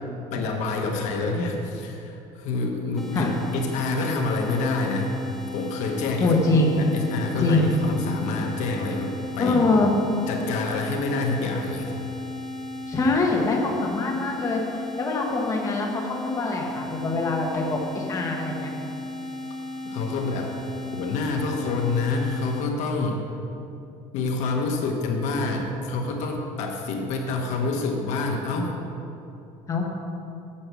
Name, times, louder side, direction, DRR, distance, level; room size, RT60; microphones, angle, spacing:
voice 1, 0.3-5.1 5.5-6.3 6.7-9.6 10.3-11.9 19.8-20.5 21.0-23.2 24.1-28.7, left 3 dB, 70° left, 2 dB, 1.3 m, -27 dB
sound 1, 3.0-22.7, left 2 dB, ahead, 1.0 m, -35 dB
voice 2, 6.2-6.8 7.4-7.7 9.4-9.9 12.9-14.6 15.0-18.7 29.7-30.0, left 3 dB, 25° left, -1 dB, 1.5 m, -23 dB
8.7 x 7.6 x 6.3 m, 2.8 s
cardioid pair, 140°, 13 cm